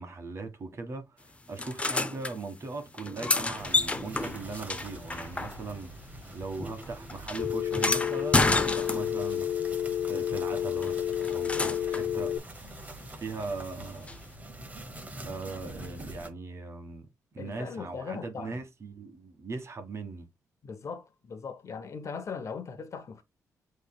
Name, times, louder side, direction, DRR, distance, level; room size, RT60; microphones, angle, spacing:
voice 1, 0.0-12.3 13.2-14.1 15.2-17.1 17.3-20.3, right 3 dB, 45° right, 1.3 m, -39 dB
sound 1, 1.6-2.3 2.9-5.9 6.2-9.3 10.8-12.1 14.1-14.2, left 2 dB, 20° left, 0.6 m, -30 dB
sound 2, 3.6-16.3, right 1 dB, 25° right, 1.1 m, -45 dB
Telephone, 7.4-12.4, left 10 dB, 70° left, 0.5 m, -30 dB
voice 2, 17.4-18.6 20.6-23.2, left 5 dB, 55° left, 0.8 m, -39 dB
7.5 x 3.2 x 2.2 m
cardioid pair, 85°, 6 cm